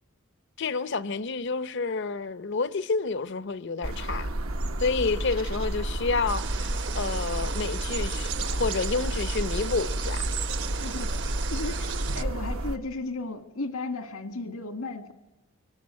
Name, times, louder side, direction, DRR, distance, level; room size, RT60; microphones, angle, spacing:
voice 1, 0.6-4.3 4.8-10.2, left 4 dB, 55° left, 0.7 m, -29 dB
sound 1, 3.8-12.8, right 1 dB, 75° right, 1.2 m, -31 dB
sound 2, 6.3-12.2, right 7 dB, 55° right, 1.1 m, -37 dB
voice 2, 10.8-15.1, left 2 dB, 85° left, 2.0 m, -35 dB
24.0 x 19.0 x 8.5 m
head